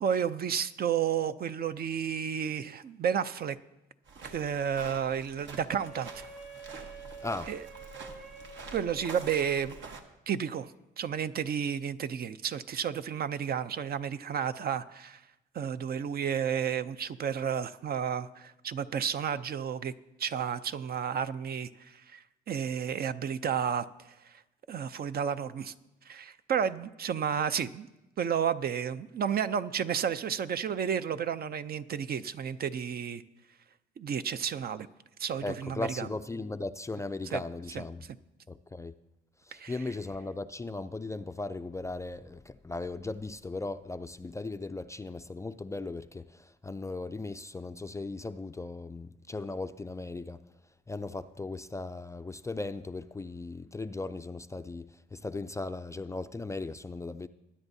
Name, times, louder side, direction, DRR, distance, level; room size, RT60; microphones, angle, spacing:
voice 1, 0.0-3.6 4.2-6.1 7.5-7.6 8.7-9.7 10.3-10.7 11.0-15.2 15.5-19.9 20.2-23.8 24.2-24.4 24.7-25.7 26.1-27.9 28.2-33.2 34.0-34.9 35.2-36.1 37.3-37.4 39.5-39.7, right 8 dB, 50° right, 0.5 m, -31 dB
sound 1, 4.1-10.0, right 4 dB, 70° right, 1.2 m, -47 dB
Wind instrument woodwind instrument, 5.8-9.9, right 3 dB, 85° right, 5.2 m, -48 dB
voice 2, 35.4-38.1 38.5-38.9 39.5-50.4 50.9-57.3, left 3 dB, 15° left, 0.3 m, -37 dB
21.0 x 9.9 x 2.7 m
cardioid pair, 90°, 20 cm